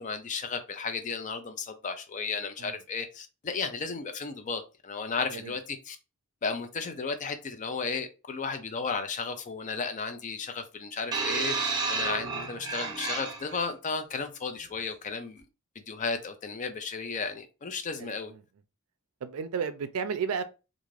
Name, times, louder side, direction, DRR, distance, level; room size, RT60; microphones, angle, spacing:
voice 1, 0.0-6.0 6.4-15.5 15.8-18.3, left 5 dB, 35° left, 0.4 m, -34 dB
sound 1, 11.1-13.7 14.6-14.7, right 4 dB, 20° right, 0.8 m, -31 dB
voice 2, 18.0-18.4 19.2-20.4, right 6 dB, 80° right, 0.4 m, -33 dB
2.5 x 2.4 x 3.1 m
head